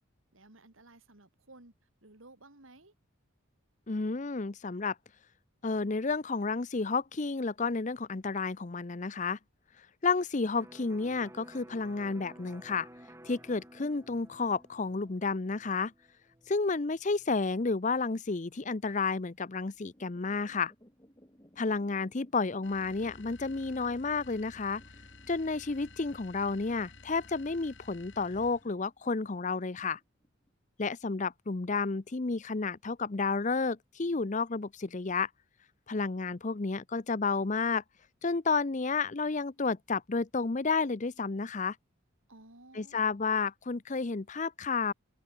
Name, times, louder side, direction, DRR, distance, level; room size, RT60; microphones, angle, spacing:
voice 1, 0.3-1.7 2.0-2.9 42.3-43.2, right 2 dB, 70° right, 2.9 m, -56 dB
voice 2, 3.9-5.0 5.6-9.4 10.0-12.9 13.2-15.9 16.5-20.7 21.6-24.8 25.3-30.0 30.8-35.3 35.9-37.8 38.2-41.8 42.7-44.9, left 4 dB, 35° left, 0.6 m, -31 dB
Electric guitar, 10.6-18.2, right 1 dB, 10° right, 5.0 m, -55 dB
sound 1, 19.7-30.5, equal, 15° left, 3.7 m, -62 dB
sound 2, 22.6-28.8, left 3 dB, 60° left, 6.5 m, -53 dB
head